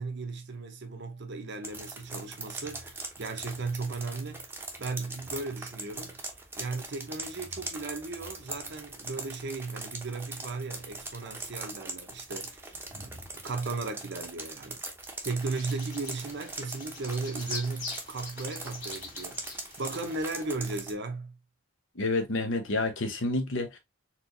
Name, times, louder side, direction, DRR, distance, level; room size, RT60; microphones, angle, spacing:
voice 1, 0.0-4.4 4.8-6.2 6.6-14.8 15.2-21.4, right 3 dB, 60° right, 0.8 m, -36 dB
sound 1, 1.6-20.9, right 2 dB, 10° right, 0.8 m, -41 dB
Bird vocalization bird call bird song, 15.4-20.4, left 4 dB, 40° left, 2.2 m, -43 dB
voice 2, 21.9-23.8, left 2 dB, 70° left, 1.0 m, -29 dB
4.4 x 3.0 x 2.6 m
head